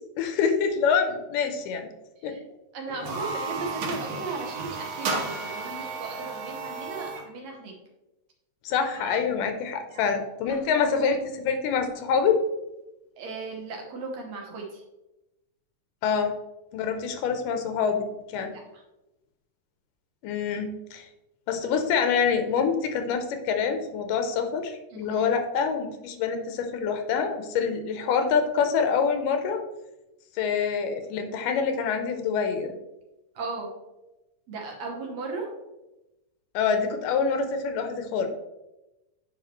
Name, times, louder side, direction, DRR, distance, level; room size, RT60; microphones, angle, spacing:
voice 1, 0.2-1.9 2.2-2.4 8.6-12.4 16.0-16.3 16.7-18.5 20.2-21.1 21.5-29.6 30.4-32.7 36.5-38.3, left 6 dB, 90° left, 6 dB, 2.5 m, -26 dB
voice 2, 2.7-7.7 8.9-9.2 9.9-10.1 10.6-10.8 13.2-14.8 18.4-18.8 24.9-25.3 33.4-33.7 34.5-35.5, right 3 dB, 65° right, 0 dB, 2.1 m, -37 dB
sound 1, 2.9-7.3, right 4 dB, 85° right, 1.1 m, -33 dB
9.1 x 5.5 x 3.1 m, 0.97 s
omnidirectional pair, 3.7 m